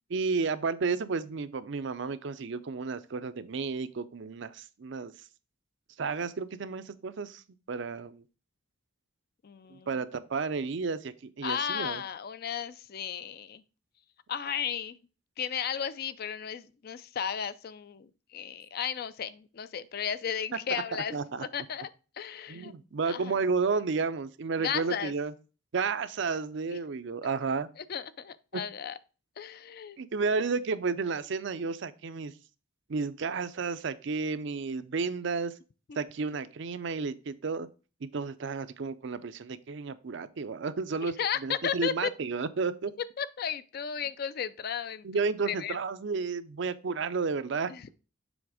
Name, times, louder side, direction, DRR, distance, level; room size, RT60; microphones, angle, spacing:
voice 1, 0.1-5.1 6.0-7.4 7.7-8.2 9.7-12.0 20.7-20.8 21.1-21.4 22.5-25.3 25.7-27.7 30.0-32.3 32.9-35.5 36.0-37.7 38.0-41.1 41.4-42.9 45.0-47.7, right 4 dB, 60° right, 0.5 m, -32 dB
voice 2, 9.4-9.9 11.4-13.6 14.3-15.0 15.4-21.9 22.2-22.7 23.0-23.3 24.6-25.1 26.7-26.8 27.8-29.0 29.4-30.0 41.0-42.1 43.0-45.2 45.5-45.8 47.7-47.9, left 8 dB, 50° left, 0.4 m, -34 dB
7.1 x 3.5 x 4.8 m
head